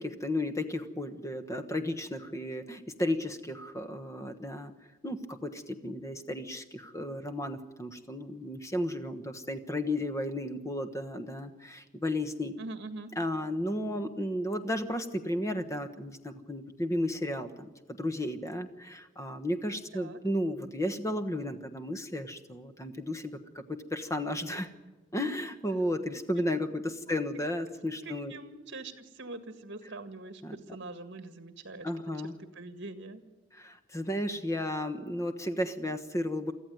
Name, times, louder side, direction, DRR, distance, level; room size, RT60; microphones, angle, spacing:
voice 1, 0.0-4.7 5.0-12.5 13.2-24.7 25.1-28.3 30.4-30.6 31.8-32.4 33.5-36.5, left 1 dB, 15° left, 9 dB, 1.2 m, -33 dB
voice 2, 12.6-13.1 19.9-20.2 28.0-31.9 32.6-33.2, right 2 dB, 60° right, 9 dB, 1.8 m, -43 dB
24.0 x 14.0 x 9.3 m, 1.2 s
head